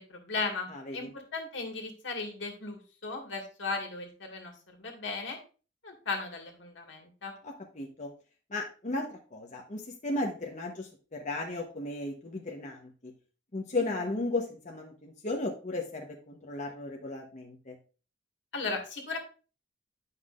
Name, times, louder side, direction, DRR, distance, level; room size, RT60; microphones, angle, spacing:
voice 1, 0.0-5.4 5.8-7.3 18.5-19.2, left 3 dB, 80° left, 2 dB, 2.0 m, -36 dB
voice 2, 0.7-1.1 7.4-8.1 8.5-13.1 13.5-17.7, left 2 dB, 40° left, 0 dB, 1.1 m, -35 dB
10.0 x 5.7 x 2.5 m, 0.35 s
head